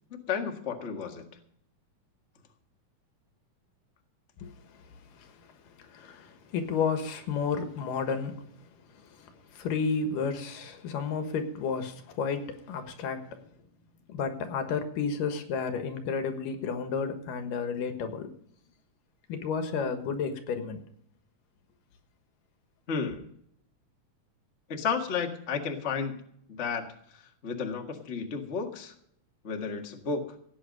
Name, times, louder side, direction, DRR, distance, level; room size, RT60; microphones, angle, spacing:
voice 1, 0.3-1.2 22.9-23.3 24.7-26.2 26.5-26.8 27.1-28.9 29.4-30.3, left 5 dB, 30° left, 1.2 m, -32 dB
voice 2, 4.4-13.5 14.1-18.3 19.3-20.8, left 5 dB, 85° left, 3.1 m, -32 dB
16.5 x 9.3 x 5.3 m
omnidirectional pair, 3.7 m